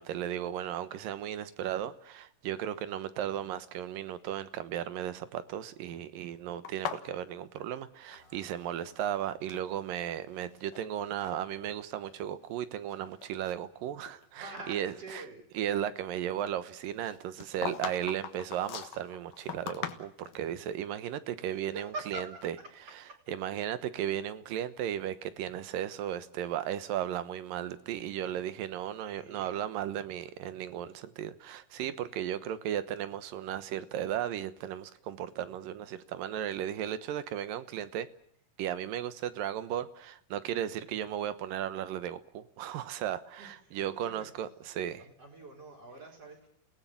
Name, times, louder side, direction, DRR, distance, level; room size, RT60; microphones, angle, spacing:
voice 1, 0.0-14.4 14.7-15.2 15.6-22.2 23.3-38.1 38.6-45.0, right 10 dB, 90° right, 2.9 m, -35 dB
sound 1, 6.6-8.6 8.9-9.7 10.3-10.9 11.2-11.4 12.1-12.2 12.7-14.2 14.6-14.7 17.0-20.4, left 9 dB, 75° left, 3.0 m, -41 dB
voice 2, 8.1-9.8 14.4-15.5 17.6-18.0 21.6-22.5 23.1-23.2 29.0-29.6 43.4-44.3 45.0-46.5, right 2 dB, 45° right, 5.5 m, -47 dB
29.5 x 18.5 x 7.5 m
omnidirectional pair, 3.9 m